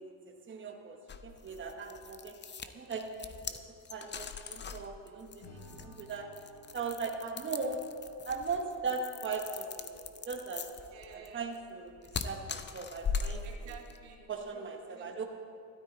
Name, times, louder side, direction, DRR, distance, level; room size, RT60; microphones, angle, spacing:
voice 1, 0.5-2.4 2.7-3.6 3.9-6.3 6.7-7.8 8.3-10.7 11.3-13.4 14.3-15.3, right 4 dB, 25° right, 3 dB, 1.2 m, -39 dB
sound 1, 1.1-14.0, left 5 dB, 25° left, 0.6 m, -41 dB
Acoustic guitar / Strum, 5.4-8.7, left 1 dB, 80° left, 3.7 m, -57 dB
voice 2, 10.8-11.5 13.4-15.2, right 7 dB, 90° right, 1 dB, 1.8 m, -52 dB
12.5 x 12.5 x 4.1 m, 2.4 s
cardioid pair, 100°, 44 cm